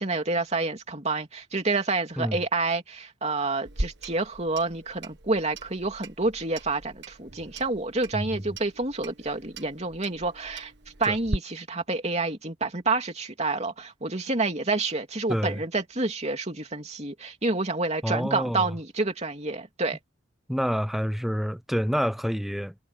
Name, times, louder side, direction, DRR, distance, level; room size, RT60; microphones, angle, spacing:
voice 1, 0.0-10.7 11.0-20.0, right 3 dB, 35° right, 3.1 m, -28 dB
Clock, 3.6-11.4, right 1 dB, 60° right, 1.7 m, -39 dB
voice 2, 15.3-15.6 18.0-18.7 20.5-22.7, equal, ahead, 0.8 m, -28 dB
head